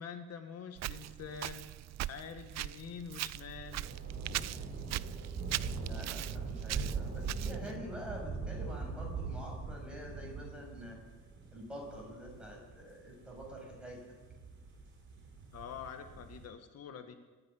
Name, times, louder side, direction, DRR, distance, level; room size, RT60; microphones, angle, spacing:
voice 1, 0.0-1.6 2.0-3.8 4.4-4.6 15.5-17.2, left 7 dB, 60° left, 7 dB, 1.7 m, -46 dB
Walk footsteps, 0.8-7.8, right 15 dB, 65° right, 0.6 m, -40 dB
sound 1, 3.7-16.5, right 4 dB, 40° right, 5.6 m, -42 dB
voice 2, 5.8-11.0 11.5-14.0, equal, 5° right, -1 dB, 6.9 m, -46 dB
27.0 x 9.8 x 10.0 m, 1.3 s
cardioid pair, 135°, 29 cm